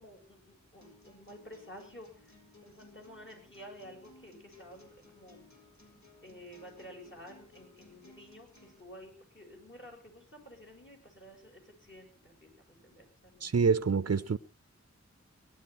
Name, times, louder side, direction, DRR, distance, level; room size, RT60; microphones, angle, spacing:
voice 1, 0.0-5.5 6.2-13.5, equal, 40° left, 7.8 m, -52 dB
sound 1, 0.8-8.8, left 3 dB, 70° left, 4.8 m, -59 dB
voice 2, 13.4-14.4, right 5 dB, 55° right, 0.7 m, -26 dB
19.0 x 11.5 x 5.8 m
wide cardioid pair, 55°, 29 cm